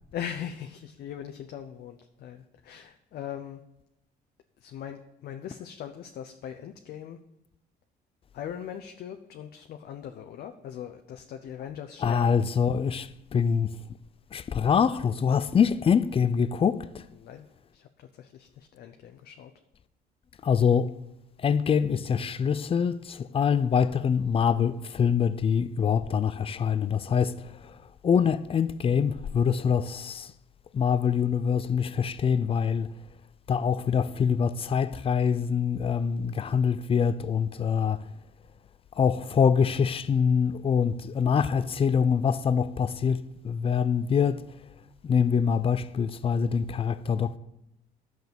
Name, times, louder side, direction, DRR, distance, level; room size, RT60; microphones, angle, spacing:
voice 1, 0.1-3.6 4.6-7.2 8.3-12.3 17.2-17.5 17.7-19.5, left 9 dB, 65° left, 0.8 m, -40 dB
voice 2, 12.0-13.8 14.3-17.0 20.4-20.9 21.4-30.3 30.7-32.9 33.5-38.1 38.9-44.4 45.0-47.4, left 7 dB, 35° left, 0.6 m, -25 dB
10.5 x 6.2 x 7.0 m
cardioid pair, 110°, 17 cm